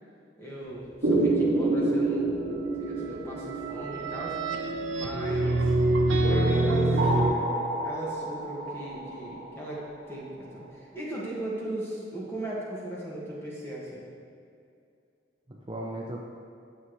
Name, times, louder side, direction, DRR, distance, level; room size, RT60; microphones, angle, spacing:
voice 1, 0.4-2.3 2.8-5.7 6.3-6.9 7.8-14.0, right 1 dB, 15° left, -6 dB, 1.7 m, -38 dB
sound 1, 1.0-5.3 6.2-10.0, right 2 dB, 60° right, 1.2 m, -29 dB
sound 2, 3.3-7.3, right 2 dB, 85° right, 0.7 m, -25 dB
voice 2, 6.5-7.5 15.5-16.2, right 1 dB, 25° right, -2 dB, 0.6 m, -37 dB
9.3 x 7.0 x 3.2 m, 2.5 s
head